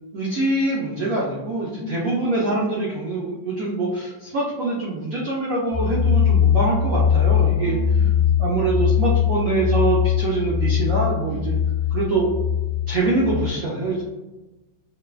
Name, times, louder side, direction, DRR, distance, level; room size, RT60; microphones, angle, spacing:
voice 1, 0.1-7.8 8.4-11.5 11.9-12.3 12.9-14.0, right 2 dB, 75° right, -5 dB, 0.7 m, -24 dB
sound 1, 5.7-13.5, left 7 dB, 30° left, 0.7 m, -21 dB
voice 2, 7.6-8.4 11.3-11.5, left 5 dB, 75° left, -6 dB, 0.8 m, -36 dB
3.1 x 2.1 x 2.2 m, 1.1 s
omnidirectional pair, 2.0 m